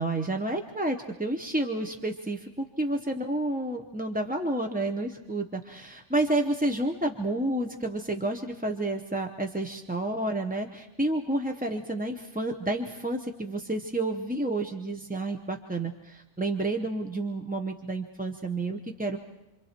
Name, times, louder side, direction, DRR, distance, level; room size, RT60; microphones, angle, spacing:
voice 1, 0.0-19.2, right 2 dB, 10° right, 4 dB, 0.6 m, -30 dB
27.0 x 26.0 x 4.4 m, 1.0 s
omnidirectional pair, 1.3 m